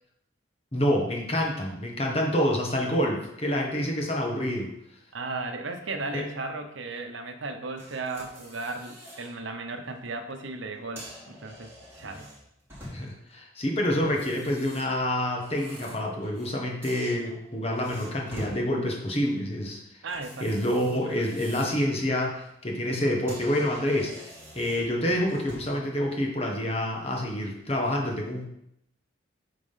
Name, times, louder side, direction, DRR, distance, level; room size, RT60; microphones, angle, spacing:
voice 1, 0.7-4.7 6.1-6.3 12.9-19.8 20.4-28.4, left 1 dB, 30° left, 0 dB, 1.4 m, -27 dB
voice 2, 5.1-11.7 12.0-12.3 20.0-20.6, right 3 dB, 75° right, 5 dB, 0.9 m, -35 dB
sound 1, 7.8-9.3 9.7-10.0 10.7-13.3 14.0-16.5 16.8-18.6 20.1-21.9 22.3-22.5 23.0-23.1 23.3-25.8, equal, 10° right, 3.0 m, -46 dB
8.6 x 3.8 x 5.6 m, 0.78 s
head